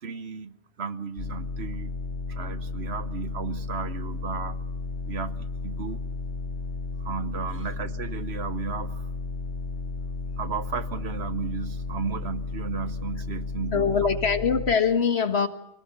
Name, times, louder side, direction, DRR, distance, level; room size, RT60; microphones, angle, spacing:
voice 1, 0.0-2.0 2.3-4.6 5.1-6.0 7.0-9.1 10.4-13.9, right 5 dB, 70° right, 13 dB, 1.3 m, -34 dB
sound 1, 1.2-14.8, left 3 dB, 90° left, 1.6 m, -33 dB
voice 2, 13.7-15.5, left 6 dB, 70° left, 9 dB, 1.9 m, -23 dB
25.5 x 18.5 x 7.0 m, 0.84 s
omnidirectional pair, 1.1 m